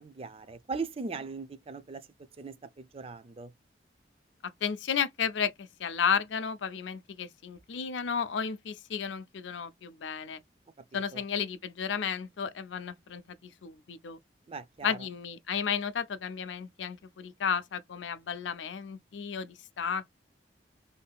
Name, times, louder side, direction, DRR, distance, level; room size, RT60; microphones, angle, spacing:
voice 1, 0.0-2.0 2.4-3.5 11.1-11.2 14.5-15.0, right 4 dB, 35° right, 0.4 m, -39 dB
voice 2, 4.4-10.4 10.9-14.2 14.8-20.0, left 7 dB, 85° left, 0.5 m, -33 dB
3.6 x 2.7 x 2.3 m
head